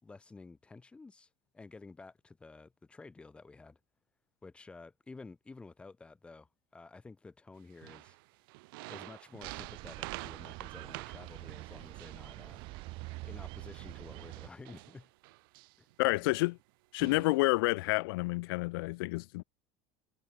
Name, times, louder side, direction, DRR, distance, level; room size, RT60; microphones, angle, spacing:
voice 1, 0.0-3.8 4.4-8.2 8.9-12.6 13.2-15.1 15.8-16.4, left 3 dB, 10° left, 5.1 m, -52 dB
sound 1, 7.7-13.3 13.8-15.9 16.6-16.7 17.0-17.4, right 24 dB, 70° right, 1.5 m, -48 dB
sound 2, 9.4-14.5, right 23 dB, 45° right, 5.8 m, -45 dB
voice 2, 16.0-16.5 16.9-19.4, left 23 dB, 75° left, 0.5 m, -29 dB
cardioid pair, 175°, 12 cm